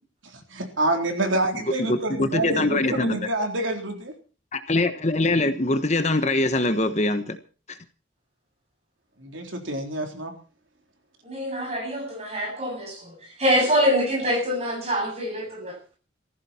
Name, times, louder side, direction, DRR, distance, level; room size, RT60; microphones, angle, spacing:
voice 1, 0.2-4.1 9.2-10.3, right 2 dB, 75° right, 3.9 m, -27 dB
voice 2, 1.9-3.2 4.5-7.4 7.7-7.8, left 2 dB, 35° left, 1.2 m, -23 dB
voice 3, 11.2-15.8, equal, 30° right, 7.8 m, -25 dB
18.5 x 15.0 x 4.4 m
head